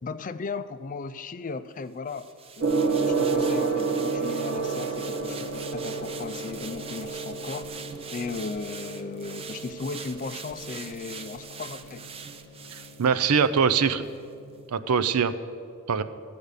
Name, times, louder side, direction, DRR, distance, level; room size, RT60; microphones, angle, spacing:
voice 1, 0.0-2.3 2.6-7.7 8.1-12.1, left 4 dB, 35° left, 12 dB, 0.4 m, -36 dB
sound 1, 2.1-13.7 14.0-14.2, right 6 dB, 25° right, 0.5 m, -43 dB
Gong, 2.6-14.6, right 4 dB, 60° right, 1.3 m, -31 dB
voice 2, 13.0-14.0 14.7-15.3 15.9-16.0, right 6 dB, 80° right, 13 dB, 0.5 m, -22 dB
14.5 x 5.1 x 8.1 m, 2.4 s
head